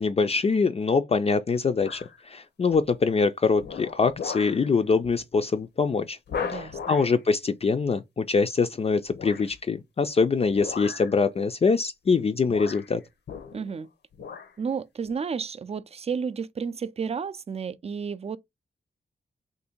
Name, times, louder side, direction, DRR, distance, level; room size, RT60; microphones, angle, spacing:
voice 1, 0.0-6.2 6.5-13.0, left 4 dB, 35° left, 0.4 m, -24 dB
sound 1, 1.8-2.2 2.7-3.1 3.6-4.6 5.0-5.2 5.6-5.7 6.3-7.2 9.1-9.6 10.5-11.2 12.1-12.2 12.5-13.8 14.1-14.5 15.0-15.1, left 6 dB, 75° left, 0.7 m, -37 dB
voice 2, 6.4-6.8 13.5-13.9 14.6-18.4, right 6 dB, 35° right, 0.4 m, -32 dB
2.7 x 2.6 x 4.3 m
cardioid pair, 65°, 17 cm